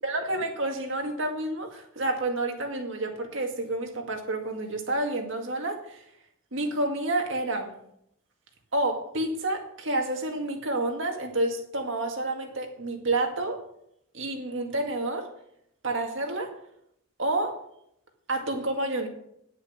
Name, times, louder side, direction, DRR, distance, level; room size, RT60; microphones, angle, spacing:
voice 1, 0.0-6.0 6.5-7.8 8.7-13.6 14.1-15.3 15.8-16.5 17.2-17.6 18.3-19.1, right 2 dB, 60° right, 3 dB, 2.0 m, -29 dB
9.9 x 8.1 x 6.5 m, 0.73 s
head